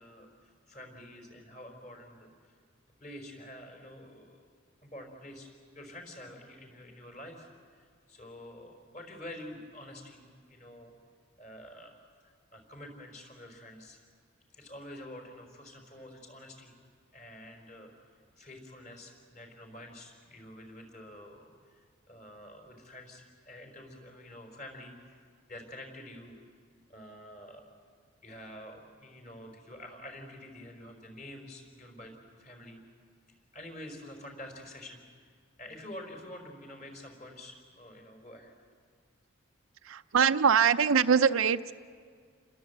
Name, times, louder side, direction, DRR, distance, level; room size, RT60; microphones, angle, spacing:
voice 1, 0.0-2.3 3.0-4.5 4.8-5.5 5.7-10.9 11.4-11.9 12.2-14.0 14.5-16.7 17.1-17.9 18.4-25.2 25.5-26.4 26.9-27.7 28.2-32.8 33.5-35.0 35.6-38.5, left 1 dB, 35° left, 3 dB, 4.4 m, -48 dB
voice 2, 39.8-41.7, right 6 dB, 90° right, 8 dB, 0.6 m, -23 dB
29.5 x 21.0 x 8.0 m, 2.1 s
head